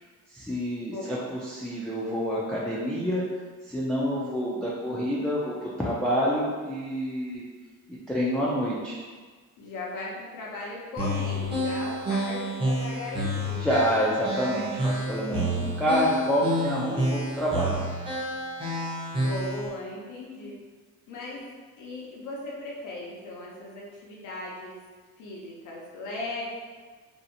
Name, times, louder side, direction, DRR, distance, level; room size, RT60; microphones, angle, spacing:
voice 1, 0.3-3.3 3.6-7.5 7.9-9.0 13.6-17.8, equal, 5° left, -7 dB, 0.3 m, -28 dB
voice 2, 0.9-1.3 9.6-13.7 19.2-20.6 21.1-21.4 21.8-24.7 25.2-26.5, left 2 dB, 90° left, -4 dB, 0.6 m, -37 dB
sound 1, 11.0-19.7, equal, 15° right, 0.7 m, -29 dB
2.7 x 2.0 x 2.6 m, 1.5 s
cardioid pair, 90°, 30 cm